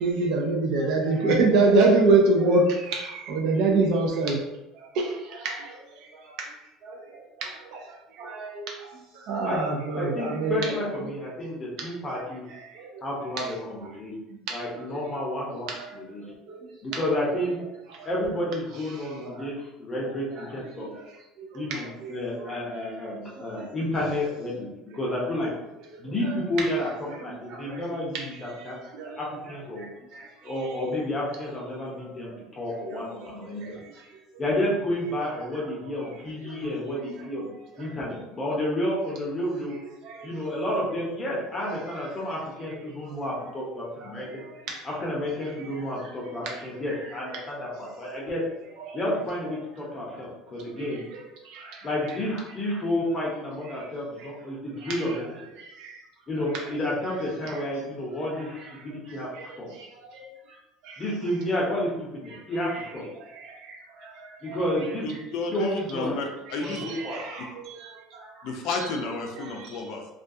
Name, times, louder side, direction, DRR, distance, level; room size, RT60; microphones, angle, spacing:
voice 1, 0.0-4.4 5.4-5.6 8.2-8.6 9.3-10.8 22.0-22.1 26.3-26.4 29.0-29.1 54.9-55.0 62.7-62.8 66.7-67.5 68.7-68.9, right 3 dB, 65° right, 0 dB, 0.4 m, -23 dB
voice 2, 9.9-12.4 13.0-14.1 14.5-15.7 15.9-16.2 16.8-17.6 18.0-20.9 21.5-24.7 24.9-25.5 26.0-26.9 27.2-28.8 29.2-29.9 30.4-33.6 34.4-37.5 37.8-39.8 40.2-44.4 44.8-48.4 48.9-51.0 51.8-55.2 56.3-58.6 58.8-59.3 59.6-59.7 61.0-63.0 64.4-65.0 65.5-66.2 66.6-67.2, left 1 dB, 25° left, -4 dB, 0.7 m, -30 dB
voice 3, 65.0-66.8 68.4-70.1, left 3 dB, 65° left, 2 dB, 0.4 m, -32 dB
2.3 x 2.2 x 2.6 m, 0.98 s
cardioid pair, 130°, 0 cm